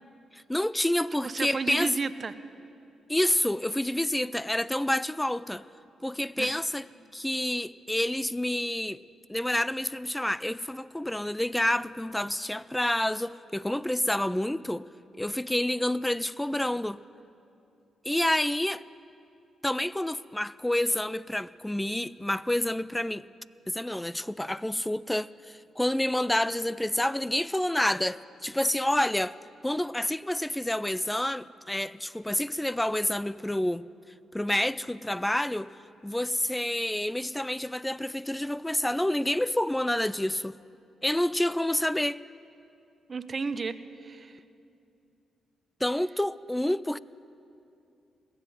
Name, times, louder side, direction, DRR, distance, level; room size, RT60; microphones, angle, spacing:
voice 1, 0.3-1.9 3.1-5.6 6.0-6.9 7.1-9.0 9.3-14.9 15.2-17.0 18.0-18.8 19.6-23.2 23.7-29.4 29.6-33.9 34.3-35.7 36.0-40.5 41.0-42.2 45.8-47.0, left 1 dB, 10° left, 0.3 m, -28 dB
voice 2, 1.2-2.3 6.4-6.6 43.1-44.4, right 4 dB, 45° right, 0.7 m, -33 dB
20.0 x 7.7 x 7.9 m
supercardioid pair, 50°, 0 cm